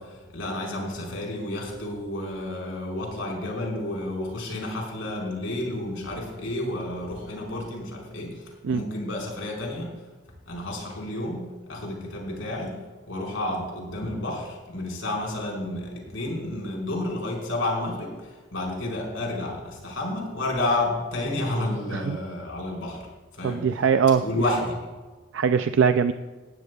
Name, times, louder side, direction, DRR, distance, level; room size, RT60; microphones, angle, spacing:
voice 1, 0.0-10.0 10.5-12.8 13.1-23.1 23.3-23.6 24.2-24.8, left 1 dB, 80° left, -2 dB, 4.8 m, -31 dB
voice 2, 23.4-24.2 25.3-26.1, right 6 dB, 70° right, 9 dB, 0.4 m, -21 dB
19.0 x 15.0 x 2.3 m, 1.3 s
head